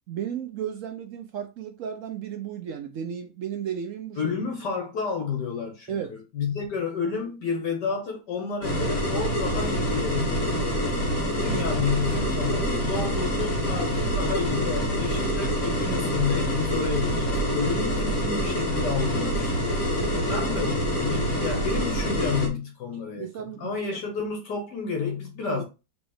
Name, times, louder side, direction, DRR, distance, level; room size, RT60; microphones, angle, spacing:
voice 1, 0.1-4.3 5.9-6.1 20.0-20.3 23.2-23.8 25.5-25.6, right 8 dB, 75° right, 0.7 m, -34 dB
voice 2, 4.2-10.6 11.3-23.3 23.6-25.6, left 5 dB, 70° left, 1.7 m, -30 dB
sound 1, 8.6-22.5, equal, 50° left, 2.3 m, -26 dB
4.4 x 2.8 x 4.2 m
omnidirectional pair, 1.9 m